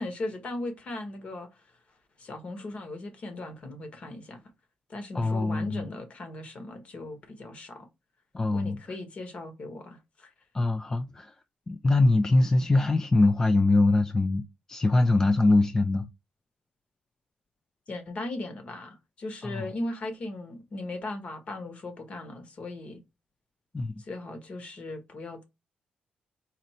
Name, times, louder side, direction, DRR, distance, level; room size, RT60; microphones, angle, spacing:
voice 1, 0.0-1.6 2.2-4.4 4.9-7.9 8.5-10.3 17.9-23.0 24.0-25.4, left 2 dB, 45° left, 1.2 m, -38 dB
voice 2, 5.1-5.8 8.3-8.8 10.5-11.3 11.7-14.4 14.7-16.1 19.6-19.7 23.7-23.9, left 2 dB, 20° left, 0.4 m, -23 dB
4.2 x 2.6 x 4.2 m
cardioid pair, 135°, 3 cm